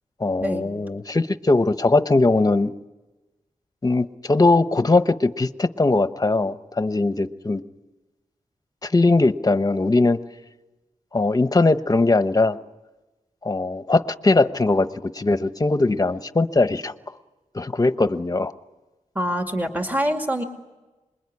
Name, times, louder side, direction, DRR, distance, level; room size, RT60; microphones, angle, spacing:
voice 1, 0.2-2.7 3.8-7.6 8.8-10.2 11.1-12.6 13.4-16.9 17.5-18.5, left 2 dB, 30° left, 11 dB, 1.0 m, -20 dB
voice 2, 19.1-20.4, equal, 15° right, 4 dB, 2.4 m, -25 dB
26.5 x 21.5 x 9.8 m, 1.1 s
wide cardioid pair, 90°, 13 cm